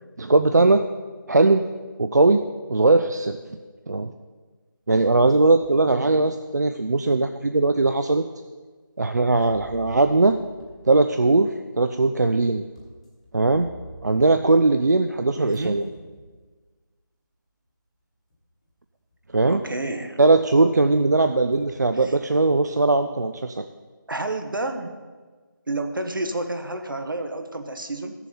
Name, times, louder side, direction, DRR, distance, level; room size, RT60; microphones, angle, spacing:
voice 1, 0.2-0.8 1.3-1.6 2.0-2.4 2.7-3.4 3.9-4.1 4.9-8.2 9.0-10.4 10.9-12.6 13.3-13.7 14.0-15.8 19.3-19.6 20.2-23.7, right 3 dB, 55° right, 7 dB, 0.4 m, -19 dB
sound 1, 5.0-5.9 6.5-6.6 7.5-7.6 9.5-15.2 15.5-16.5 17.7-17.8 18.3-18.7 19.1-19.9 20.3-22.6, equal, 15° left, 1.2 m, -49 dB
voice 2, 5.9-6.2 15.4-15.8 19.4-20.2 21.9-22.2 24.1-24.9 25.7-28.1, right 2 dB, 70° right, 7 dB, 1.2 m, -30 dB
14.0 x 6.9 x 4.3 m, 1.4 s
figure-of-eight pair, 175°, 11 cm